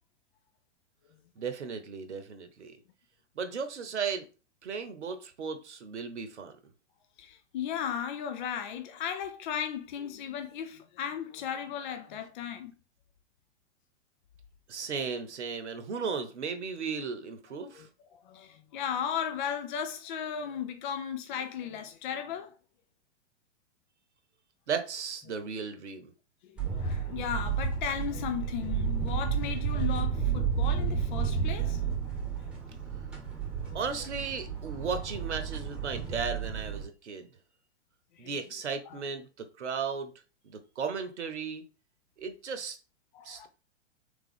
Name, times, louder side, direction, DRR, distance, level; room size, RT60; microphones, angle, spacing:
voice 1, 1.4-2.8 3.4-4.3 4.6-6.6 14.7-17.9 24.7-26.1 33.7-37.3 38.2-40.1 40.4-41.6 42.2-42.8 43.2-43.5, right 5 dB, 75° right, 0.9 m, -35 dB
voice 2, 7.2-12.7 17.7-17.9 18.1-22.5 26.5-31.9 33.6-33.8 38.1-38.3 38.9-39.0 43.1-43.5, left 8 dB, 45° left, 0.5 m, -36 dB
sound 1, 26.6-36.8, right 7 dB, 5° right, 1.3 m, -32 dB
3.6 x 3.4 x 3.5 m
figure-of-eight pair, 105°, 35 cm